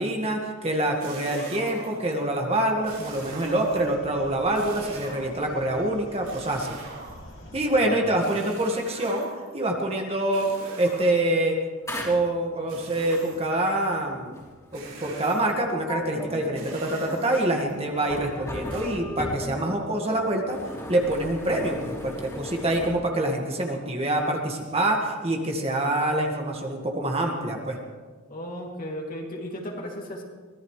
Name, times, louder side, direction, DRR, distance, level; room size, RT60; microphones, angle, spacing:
voice 1, 0.0-6.9 7.5-9.3 9.5-10.5 10.8-11.6 12.0-14.4 14.7-20.6 20.9-27.8, right 1 dB, 30° right, 1 dB, 1.8 m, -26 dB
sound 1, 0.9-2.2 2.8-4.0 4.5-5.5 6.2-7.5 8.2-9.6 10.3-11.4 12.7-13.6 14.7-15.6 16.5-17.7 18.7-18.8, right 3 dB, 80° right, 5.8 m, -42 dB
sound 2, 2.8-7.8, left 1 dB, 60° left, 2.5 m, -47 dB
voice 2, 7.4-8.1 28.3-30.2, equal, 40° left, 0 dB, 2.8 m, -35 dB
sound 3, 11.8-22.9, left 1 dB, 15° left, 3.5 m, -37 dB
23.5 x 17.5 x 3.3 m, 1.4 s
head